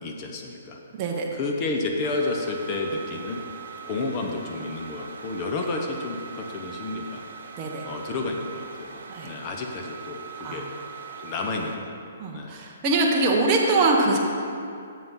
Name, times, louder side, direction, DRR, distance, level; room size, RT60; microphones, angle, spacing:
voice 1, 0.0-0.8 1.3-3.4 3.8-7.2 7.8-10.7 11.2-11.9 12.3-12.5, left 3 dB, 20° left, 1 dB, 0.6 m, -31 dB
voice 2, 0.9-1.4 7.6-7.9 9.1-9.3 10.4-10.6 12.2-14.2, right 2 dB, 20° right, -2 dB, 0.8 m, -23 dB
sound 1, 2.0-11.8, right 6 dB, 70° right, 1.0 m, -41 dB
7.5 x 5.5 x 5.5 m, 2.4 s
hypercardioid pair, 175°, 0 cm